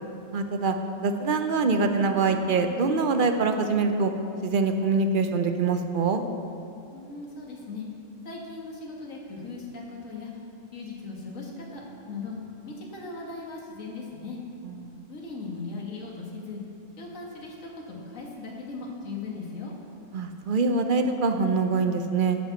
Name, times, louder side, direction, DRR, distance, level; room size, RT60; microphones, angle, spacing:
voice 1, 0.3-0.8 1.0-4.1 4.4-6.2 14.8-15.0 20.1-22.4, right 4 dB, 50° right, 7 dB, 0.7 m, -24 dB
voice 2, 6.9-7.8 8.2-10.3 10.7-12.4 12.7-14.4 15.1-16.6 17.0-19.7, left 3 dB, 80° left, -1 dB, 1.9 m, -38 dB
9.9 x 6.0 x 7.2 m, 2.5 s
omnidirectional pair, 1.4 m